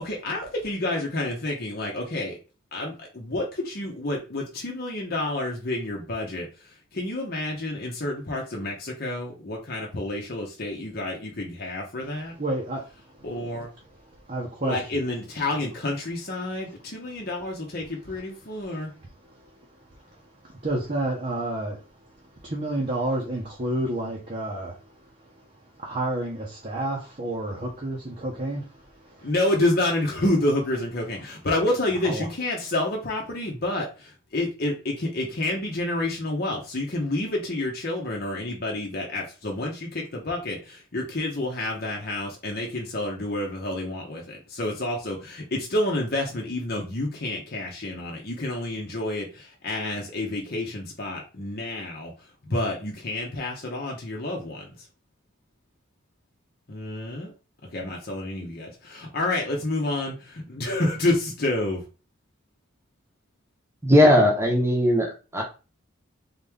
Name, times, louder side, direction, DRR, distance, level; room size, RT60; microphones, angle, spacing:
voice 1, 0.0-2.4 2.7-12.3 13.2-13.7 14.6-18.9 29.2-52.1 52.4-54.7 56.7-57.3 57.7-61.8, left 1 dB, 45° left, -1 dB, 0.9 m, -29 dB
voice 2, 12.4-13.4 14.0-14.8 18.5-25.5 25.8-29.3 32.0-32.3, right 1 dB, 35° right, -2 dB, 0.9 m, -31 dB
voice 3, 63.8-65.4, equal, 10° right, 0 dB, 1.0 m, -18 dB
3.9 x 3.1 x 3.5 m, 0.33 s
head